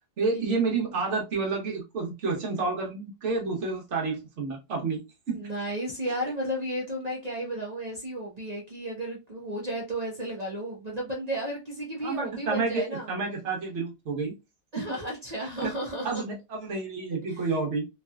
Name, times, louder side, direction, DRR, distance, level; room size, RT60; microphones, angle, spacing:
voice 1, 0.2-5.0 5.3-5.4 12.0-14.3 14.7-14.9 15.4-15.7 16.0-17.9, right 4 dB, 50° right, 1.1 m, -30 dB
voice 2, 5.3-13.1 14.7-16.2 17.3-17.6, right 1 dB, 70° right, 0.3 m, -33 dB
3.1 x 2.8 x 2.3 m
omnidirectional pair, 1.8 m